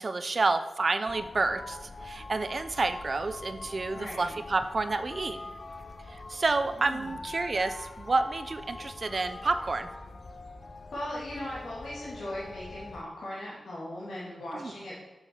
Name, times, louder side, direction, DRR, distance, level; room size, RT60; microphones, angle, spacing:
voice 1, 0.0-5.4 6.1-9.9 14.5-14.7, right 3 dB, 45° right, 10 dB, 0.6 m, -29 dB
sound 1, 1.1-13.0, left 2 dB, 40° left, 0.6 m, -44 dB
voice 2, 3.9-4.3 6.8-7.2 10.9-15.0, left 1 dB, 80° left, -7 dB, 2.3 m, -38 dB
6.4 x 5.5 x 6.2 m, 1.2 s
cardioid pair, 75°, 0 cm